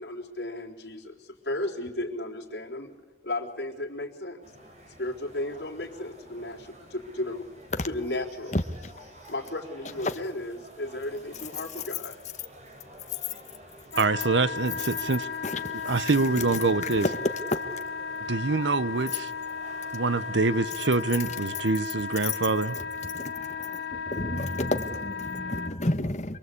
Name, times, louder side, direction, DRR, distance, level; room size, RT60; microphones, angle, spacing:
voice 1, 0.0-2.9 3.2-4.4 5.0-7.4 7.8-8.6 9.3-12.2, left 1 dB, 65° left, 3.9 m, -34 dB
sound 1, 4.4-21.6, right 1 dB, 40° right, 4.0 m, -51 dB
Wind instrument woodwind instrument, 13.9-25.7, left 5 dB, 85° left, 1.5 m, -35 dB
voice 2, 14.0-15.3 15.8-17.1 18.3-19.3 19.9-22.8, right 3 dB, 90° right, 0.9 m, -25 dB
voice 3, 15.4-16.2 17.0-17.6 22.2-22.3 23.1-26.4, left 2 dB, 40° left, 1.3 m, -30 dB
27.5 x 21.5 x 8.5 m
head